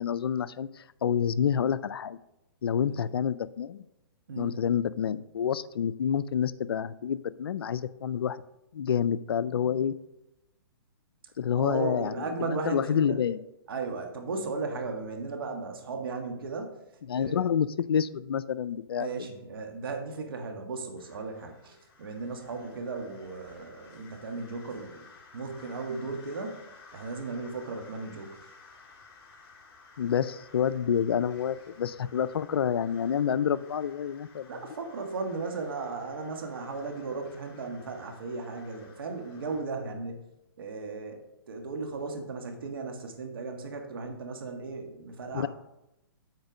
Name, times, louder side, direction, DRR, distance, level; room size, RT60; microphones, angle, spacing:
voice 1, 0.0-2.2 2.6-3.8 4.4-8.4 8.7-10.0 11.4-13.4 17.1-19.1 30.0-34.5 45.3-45.5, left 8 dB, 80° left, 17 dB, 0.4 m, -28 dB
voice 2, 11.5-13.2 13.7-16.7 17.1-17.6 19.0-25.1 25.3-26.6 26.9-28.5 34.5-40.2 40.6-45.5, right 4 dB, 70° right, 4 dB, 1.6 m, -36 dB
sound 1, 21.0-39.6, left 4 dB, 30° left, 2.3 m, -55 dB
8.1 x 4.4 x 5.1 m, 0.91 s
hypercardioid pair, 140°, 12 cm